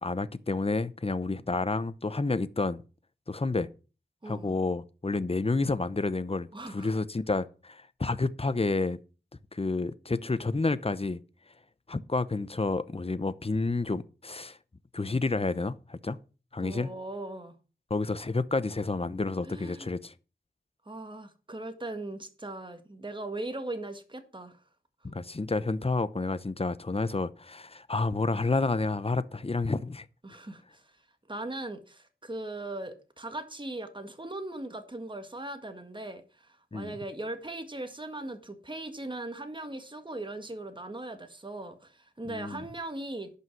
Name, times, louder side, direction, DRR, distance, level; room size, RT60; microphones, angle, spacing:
voice 1, 0.0-2.8 3.3-3.7 4.2-9.0 9.5-11.2 11.9-14.6 14.9-16.2 16.5-16.9 17.9-20.1 25.0-30.1 36.7-37.0 42.3-42.6, left 3 dB, 30° left, 0.8 m, -30 dB
voice 2, 4.2-4.6 6.5-6.9 16.6-17.5 19.4-19.9 20.8-24.6 30.2-30.9 31.3-43.3, right 2 dB, 25° right, 1.7 m, -39 dB
11.0 x 5.7 x 6.0 m
cardioid pair, 45°, 20 cm